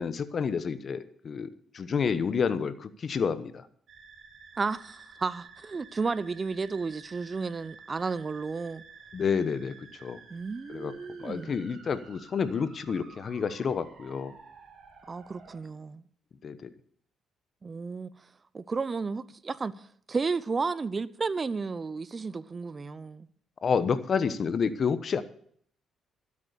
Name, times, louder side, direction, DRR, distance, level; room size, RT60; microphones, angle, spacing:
voice 1, 0.0-1.5 1.7-3.6 9.1-9.8 10.0-10.2 10.7-10.9 11.2-14.3 16.4-16.7 23.6-25.2, left 6 dB, 50° left, 1.0 m, -29 dB
sound 1, 3.9-15.6, right 5 dB, 60° right, 3.2 m, -52 dB
voice 2, 4.6-8.8 10.3-11.5 15.1-16.0 17.6-18.1 18.5-23.3, right 4 dB, 30° right, 0.7 m, -33 dB
12.5 x 8.4 x 6.8 m
cardioid pair, 90°, 0 cm